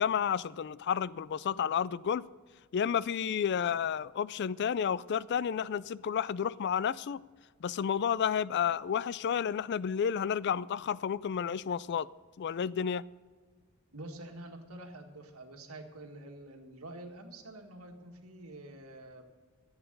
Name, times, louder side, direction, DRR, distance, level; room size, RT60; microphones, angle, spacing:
voice 1, 0.0-2.2 2.7-7.2 7.6-12.1 12.4-13.0, left 8 dB, 50° left, 0.3 m, -31 dB
voice 2, 13.9-19.3, right 1 dB, 75° right, 1.7 m, -47 dB
14.5 x 8.1 x 6.6 m
head